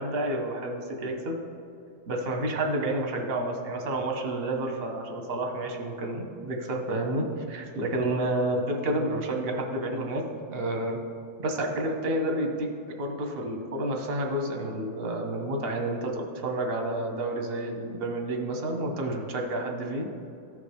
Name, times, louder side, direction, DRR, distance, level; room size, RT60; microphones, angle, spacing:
voice 1, 0.0-1.4 2.1-10.2 10.5-11.0 11.4-20.1, right 1 dB, 55° right, 2 dB, 0.6 m, -30 dB
14.0 x 5.0 x 3.4 m, 2.6 s
omnidirectional pair, 2.2 m